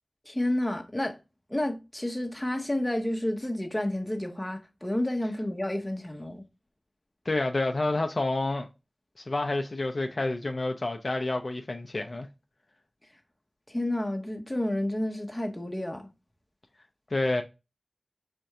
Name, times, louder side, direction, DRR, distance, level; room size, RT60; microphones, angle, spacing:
voice 1, 0.3-1.2 1.5-6.4 13.7-16.1, left 1 dB, 20° left, 1.0 m, -30 dB
voice 2, 7.3-8.7 9.2-12.3 17.1-17.4, left 2 dB, 55° left, 0.5 m, -29 dB
4.3 x 2.6 x 4.7 m
wide cardioid pair, 50°, 0 cm